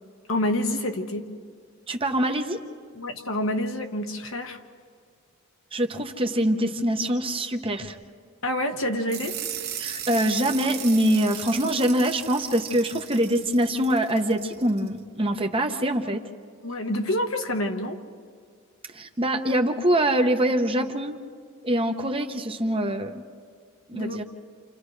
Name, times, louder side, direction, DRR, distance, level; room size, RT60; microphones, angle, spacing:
voice 1, 0.3-1.3 2.9-4.6 8.4-9.4 16.6-18.0 23.9-24.2, left 1 dB, 65° left, 4 dB, 1.4 m, -27 dB
voice 2, 1.9-2.6 5.7-8.0 9.8-16.2 18.9-21.2 21.6-23.1 23.9-24.2, right 1 dB, 25° right, 5 dB, 0.9 m, -24 dB
sound 1, 9.1-14.9, right 9 dB, 50° right, 1.5 m, -37 dB
29.5 x 28.0 x 3.3 m, 2.2 s
head